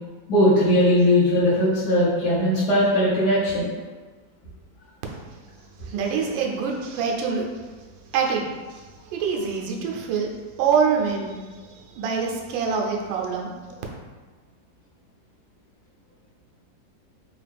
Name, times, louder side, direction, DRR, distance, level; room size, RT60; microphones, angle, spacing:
voice 1, 0.3-3.7, left 1 dB, 60° left, -10 dB, 1.3 m, -19 dB
voice 2, 5.8-7.6 8.1-13.5, right 6 dB, 80° right, 0 dB, 1.3 m, -26 dB
3.6 x 2.4 x 3.3 m, 1.4 s
omnidirectional pair, 2.0 m